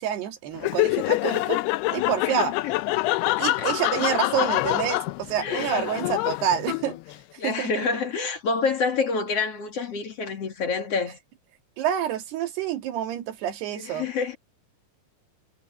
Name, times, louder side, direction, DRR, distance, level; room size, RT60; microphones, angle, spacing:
voice 1, 0.0-1.6 1.9-2.6 3.4-7.0 7.4-7.9 11.8-14.1, right 9 dB, 80° right, 4.2 m, -28 dB
Laughter, 0.6-7.1, left 19 dB, 85° left, 2.6 m, -26 dB
voice 2, 2.2-2.8 3.3-3.7 5.4-5.8 7.4-11.2 13.7-14.4, left 4 dB, 50° left, 2.2 m, -28 dB
omnidirectional pair, 4.6 m